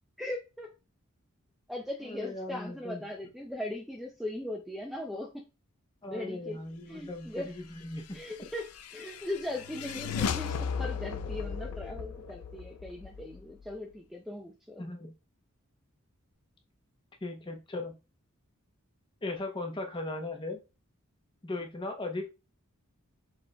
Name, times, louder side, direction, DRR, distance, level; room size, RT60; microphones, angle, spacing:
voice 1, 0.2-0.7 1.7-5.4 6.1-6.6 6.9-7.5 8.1-8.7 8.9-14.8, left 1 dB, ahead, 1 dB, 0.4 m, -39 dB
voice 2, 2.0-3.0 6.0-8.5 14.8-15.1 17.2-18.0 19.2-20.6 21.4-22.3, left 2 dB, 20° left, 3 dB, 0.8 m, -38 dB
sound 1, 8.1-13.7, left 6 dB, 85° left, 0.4 m, -36 dB
sound 2, 9.2-13.4, left 4 dB, 55° left, 0.9 m, -49 dB
5.7 x 3.8 x 2.2 m, 0.28 s
head